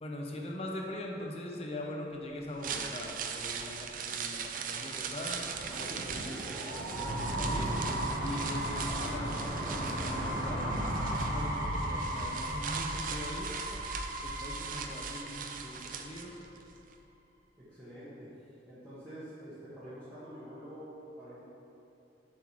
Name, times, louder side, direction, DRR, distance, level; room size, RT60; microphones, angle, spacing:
voice 1, 0.0-3.8 4.0-7.7 8.2-13.5 14.2-16.3, left 1 dB, 35° left, 0 dB, 0.7 m, -41 dB
sound 1, 2.4-16.6 16.9-17.0, right 6 dB, 50° right, 0.4 m, -40 dB
sound 2, 5.2-16.2, right 1 dB, 80° right, 1.0 m, -35 dB
voice 2, 17.7-18.3 18.7-21.4, equal, 20° right, -14 dB, 1.3 m, -47 dB
7.3 x 5.5 x 3.1 m, 2.8 s
head